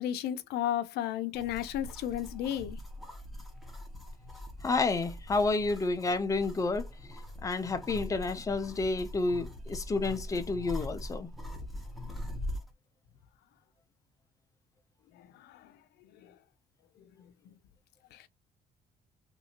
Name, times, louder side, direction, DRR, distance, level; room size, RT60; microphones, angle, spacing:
voice 1, 0.0-2.8 18.1-18.2, left 11 dB, 85° left, 0.5 m, -33 dB
sound 1, 1.3-12.7, left 1 dB, ahead, 1.0 m, -42 dB
voice 2, 4.6-6.9 7.4-11.3, left 3 dB, 20° left, 0.6 m, -30 dB
3.2 x 2.6 x 2.8 m
cardioid pair, 120°, 16 cm